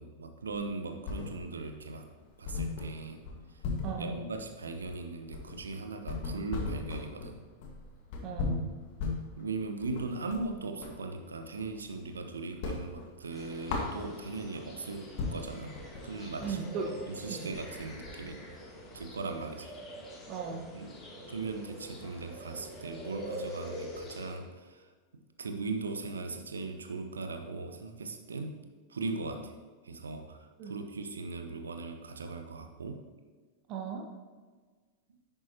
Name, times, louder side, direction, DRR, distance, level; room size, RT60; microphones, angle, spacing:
voice 1, 0.0-2.1 2.4-3.2 4.0-7.4 9.4-15.7 16.0-16.6 16.8-18.4 18.9-19.7 20.7-21.0 21.3-24.9 25.1-28.6 28.9-29.5 29.8-33.0, right 3 dB, 70° right, 6 dB, 0.9 m, -39 dB
sound 1, 0.5-1.7 2.0-2.1 2.4-11.0 11.4-12.2 12.5-14.5 14.9-15.0 15.2-19.3, left 4 dB, 50° left, 1.6 m, -38 dB
voice 2, 3.8-4.1 8.2-8.6 16.4-17.0 17.3-17.5 20.3-20.7 30.6-30.7 33.7-34.0, right 5 dB, 40° right, 1 dB, 1.3 m, -37 dB
sound 2, 13.3-24.3, equal, 25° left, 2.7 m, -45 dB
10.5 x 8.8 x 2.9 m, 1.4 s
figure-of-eight pair, 90°, 0 cm